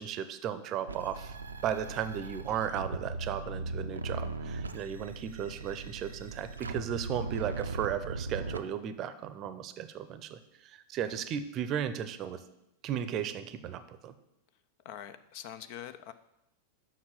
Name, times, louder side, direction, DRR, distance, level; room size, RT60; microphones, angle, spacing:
voice 1, 0.0-1.3 1.6-12.4 12.8-14.1, right 9 dB, 35° right, 13 dB, 0.7 m, -35 dB
sound 1, 0.9-8.6, right 3 dB, 75° right, 0.5 m, -39 dB
voice 2, 14.8-16.1, left 10 dB, 45° left, 12 dB, 0.5 m, -44 dB
7.2 x 6.0 x 7.5 m, 0.85 s
figure-of-eight pair, 90°, 0 cm